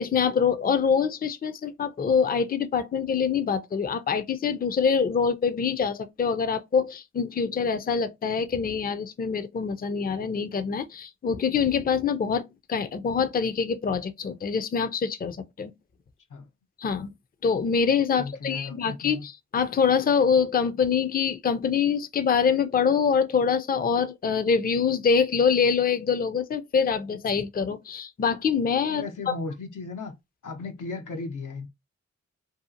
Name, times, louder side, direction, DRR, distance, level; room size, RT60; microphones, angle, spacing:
voice 1, 0.0-15.7 16.8-17.1 17.4-29.4, left 6 dB, 30° left, 0.4 m, -25 dB
voice 2, 18.2-19.3 28.9-30.1 30.4-31.7, left 3 dB, 80° left, 0.7 m, -36 dB
2.7 x 2.4 x 2.5 m
cardioid pair, 45°, 31 cm